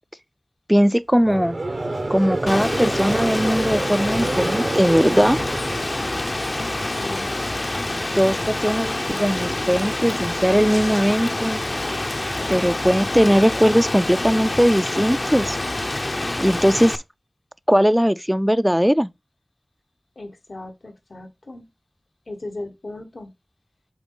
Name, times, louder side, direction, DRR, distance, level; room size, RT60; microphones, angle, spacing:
voice 1, 0.7-1.6 2.1-5.4 7.0-7.2 7.9-11.6 12.5-15.6 16.4-17.0 17.7-19.1, equal, 5° right, 0.3 m, -19 dB
Conversation / Crowd, 1.2-6.5, right 2 dB, 75° right, 1.0 m, -28 dB
Rain, 2.5-17.0, left 2 dB, 45° left, 0.6 m, -27 dB
voice 2, 6.7-7.4 20.2-21.6 22.3-23.3, left 2 dB, 80° left, 1.2 m, -37 dB
7.1 x 4.0 x 3.8 m
wide cardioid pair, 55°, 0 cm